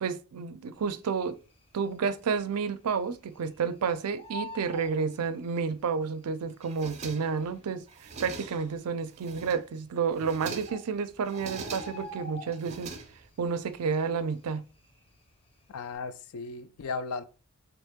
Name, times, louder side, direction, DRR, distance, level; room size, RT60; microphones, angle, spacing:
voice 1, 0.0-1.4 1.7-12.9 13.4-14.6, right 5 dB, 85° right, 0.4 m, -30 dB
Bird, 1.3-1.9 2.2-2.3 2.5-3.7 4.0-5.8 6.7-6.8 7.4-7.5 7.7-7.8 8.5-8.9 9.9-10.0 10.3-10.4 10.7-13.0 13.3-13.6 13.9-15.3 15.6-15.9, left 1 dB, 25° left, 0.6 m, -44 dB
sound 1, 6.6-7.5 7.9-8.7 9.1-9.8 10.1-10.9 11.2-12.1 12.5-13.5, right 4 dB, 30° right, 0.5 m, -42 dB
voice 2, 15.7-17.2, left 4 dB, 70° left, 0.4 m, -36 dB
3.6 x 3.0 x 3.5 m
head